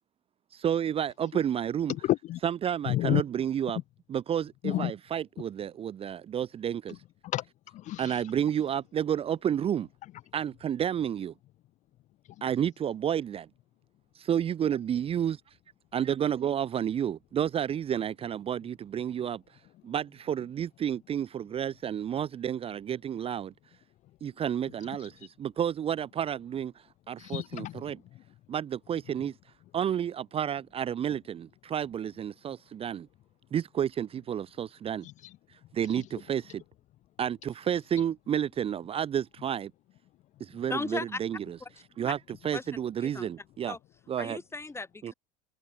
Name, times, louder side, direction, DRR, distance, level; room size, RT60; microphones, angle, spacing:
voice 1, 0.5-1.9 2.4-3.8 4.1-7.0 8.0-9.9 10.3-11.3 12.4-13.5 14.1-15.4 15.9-19.6 19.8-23.5 24.2-28.0 28.5-29.3 29.7-33.1 33.5-35.1 35.5-36.6 37.2-39.7 40.4-41.6 42.0-42.2 42.4-43.8 44.1-44.4 45.0-45.1, right 9 dB, 30° right, 0.9 m, -31 dB
voice 2, 1.9-2.4 2.9-3.2 4.6-4.9 7.2-8.2 25.0-25.1 27.2-27.9 35.0-35.3 35.9-36.0, left 15 dB, 40° left, 0.7 m, -31 dB
voice 3, 40.7-41.2 41.6-41.7 42.5-42.6 43.0-43.3 43.7-43.8 44.2-45.1, left 3 dB, 15° left, 7.8 m, -36 dB
hypercardioid pair, 75°, 18 cm